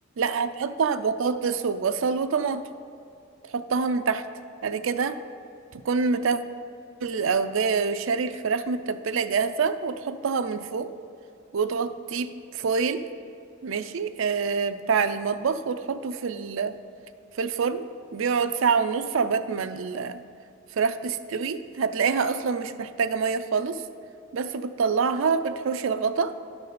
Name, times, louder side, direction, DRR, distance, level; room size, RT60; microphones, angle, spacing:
voice 1, 0.2-2.7 3.4-4.3 4.6-5.2 5.7-6.4 7.0-10.9 11.5-13.0 13.6-16.8 17.3-17.8 18.1-20.2 20.7-23.8 24.3-26.3, right 5 dB, 70° right, 10 dB, 0.4 m, -26 dB
11.0 x 4.0 x 6.7 m, 2.6 s
head